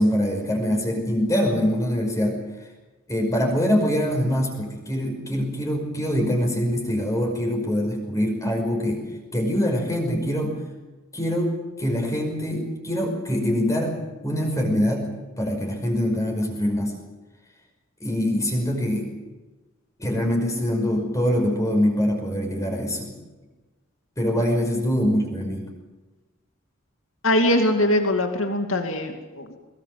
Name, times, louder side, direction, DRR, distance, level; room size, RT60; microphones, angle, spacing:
voice 1, 0.0-2.4 3.1-9.0 9.3-10.5 11.1-15.1 15.4-17.0 18.0-19.1 20.0-23.1 24.2-25.7, equal, 15° left, 1 dB, 5.5 m, -24 dB
voice 2, 27.2-29.6, left 1 dB, 75° left, 4 dB, 2.6 m, -22 dB
21.5 x 21.5 x 7.7 m, 1.2 s
head